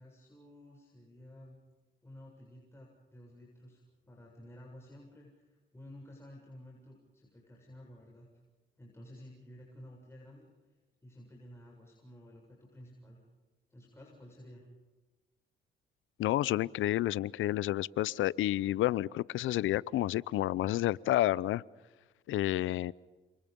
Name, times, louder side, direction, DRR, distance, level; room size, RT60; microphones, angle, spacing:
voice 1, 0.0-1.6 2.0-8.3 8.8-10.5 11.0-13.2 13.7-14.7, left 1 dB, 15° left, -2 dB, 7.3 m, -53 dB
voice 2, 16.2-21.6 22.3-22.9, left 15 dB, 80° left, 22 dB, 0.7 m, -30 dB
29.5 x 28.0 x 5.4 m, 1.2 s
cardioid pair, 90°, 20 cm